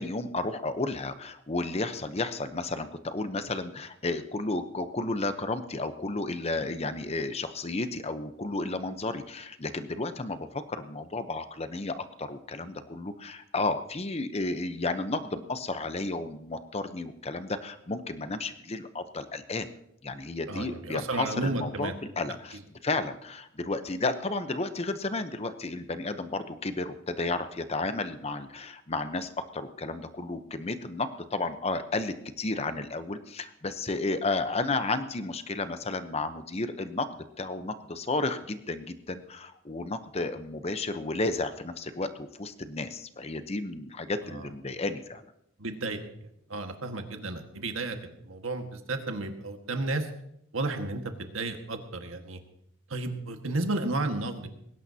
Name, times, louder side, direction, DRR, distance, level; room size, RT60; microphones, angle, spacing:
voice 1, 0.0-37.1 37.4-45.3, left 2 dB, 30° left, 10 dB, 0.8 m, -32 dB
voice 2, 20.5-21.9 44.3-44.5 45.6-46.0 46.5-48.0 48.2-50.1 50.5-52.4 52.9-54.5, right 2 dB, 90° right, 5 dB, 1.7 m, -32 dB
20.0 x 17.0 x 2.8 m, 0.76 s
head